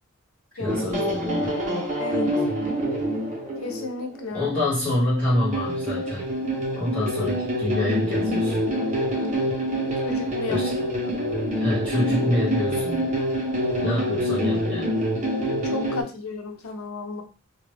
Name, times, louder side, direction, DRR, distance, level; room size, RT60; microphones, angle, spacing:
voice 1, 0.5-1.5 4.3-6.3 6.7-8.7 10.5-10.7 11.5-13.1 13.8-15.0, left 1 dB, 5° left, -10 dB, 1.7 m, -26 dB
sound 1, 0.7-4.5 5.3-16.0, equal, 35° right, 0.9 m, -26 dB
voice 2, 2.0-2.3 3.6-4.6 10.0-10.6 11.0-11.2 15.7-17.2, left 3 dB, 85° left, 4 dB, 0.6 m, -33 dB
2.9 x 2.4 x 3.2 m, 0.36 s
head